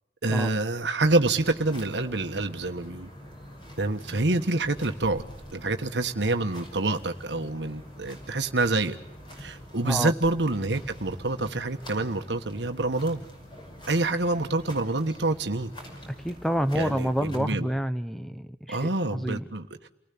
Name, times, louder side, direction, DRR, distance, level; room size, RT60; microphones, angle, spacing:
voice 1, 0.2-3.1 3.8-5.2 5.5-9.0 9.4-13.2 13.9-15.7 16.7-17.7 18.7-19.9, right 2 dB, 90° right, 6 dB, 1.4 m, -27 dB
sound 1, 1.3-17.4, equal, 25° left, 5.8 m, -45 dB
voice 2, 9.8-10.1 16.2-19.4, equal, ahead, 11 dB, 1.0 m, -28 dB
29.5 x 19.0 x 8.5 m, 0.86 s
head